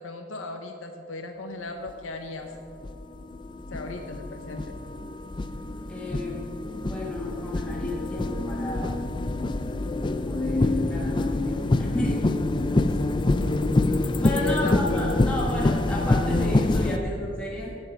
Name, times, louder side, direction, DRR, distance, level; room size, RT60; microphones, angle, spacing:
voice 1, 0.0-2.5 3.7-4.6 14.3-15.0, left 3 dB, 85° left, 4 dB, 0.8 m, -35 dB
sound 1, 1.9-2.0 2.7-17.0, left 2 dB, 25° left, 0.4 m, -26 dB
voice 2, 5.9-9.0 10.2-12.3 13.9-17.7, left 1 dB, 5° left, -6 dB, 1.4 m, -33 dB
9.1 x 8.7 x 5.8 m, 2.4 s
head